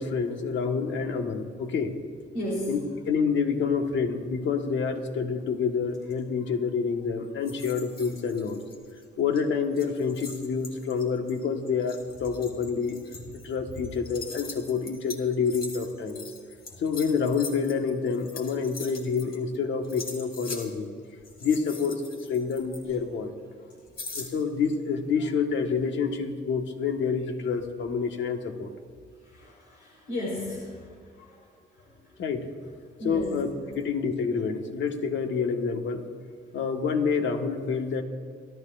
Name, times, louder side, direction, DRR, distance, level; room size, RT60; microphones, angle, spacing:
voice 1, 0.0-1.9 2.7-2.8 3.1-8.6 9.2-13.0 13.3-16.2 16.8-20.9 21.4-23.4 24.1-28.7 32.2-32.5 33.0-33.5 33.8-36.1 36.5-38.0, left 5 dB, 70° left, 4 dB, 1.5 m, -28 dB
voice 2, 2.3-2.8 29.2-30.9 31.2-31.4 31.8-31.9 33.0-33.3 33.6-33.7, left 1 dB, 85° left, -6 dB, 3.9 m, -34 dB
sound 1, 7.4-9.0 9.3-9.4 9.7-19.6 19.8-20.7 21.2-23.2 24.0-24.8, left 3 dB, 50° left, 2.9 m, -43 dB
29.5 x 12.0 x 2.5 m, 2.1 s
cardioid pair, 90°, 20 cm